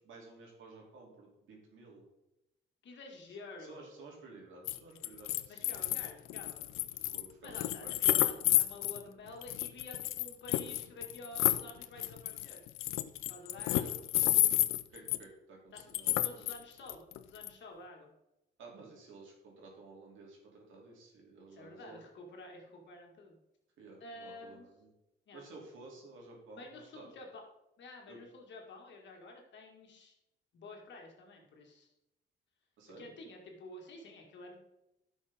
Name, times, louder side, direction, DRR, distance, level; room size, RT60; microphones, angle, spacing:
voice 1, 0.0-2.1 3.6-6.0 7.1-8.4 13.8-14.0 14.9-16.5 18.6-22.0 23.8-24.9 25.3-27.1 28.1-28.2 32.8-33.1, right 3 dB, 80° right, -2 dB, 3.1 m, -53 dB
voice 2, 2.8-3.9 5.5-6.6 7.4-12.6 13.3-13.9 15.7-15.8 16.2-18.1 21.5-23.4 24.0-24.7 25.3-25.4 26.5-27.4 27.8-30.1 30.5-31.9 33.0-34.5, left 2 dB, 65° left, 1 dB, 2.1 m, -50 dB
sound 1, 4.7-4.8 5.0-9.0 9.4-15.2 15.8-16.6 16.9-17.5, left 15 dB, 90° left, 0.5 m, -31 dB
11.0 x 6.2 x 3.6 m, 0.90 s
cardioid pair, 90°, 20 cm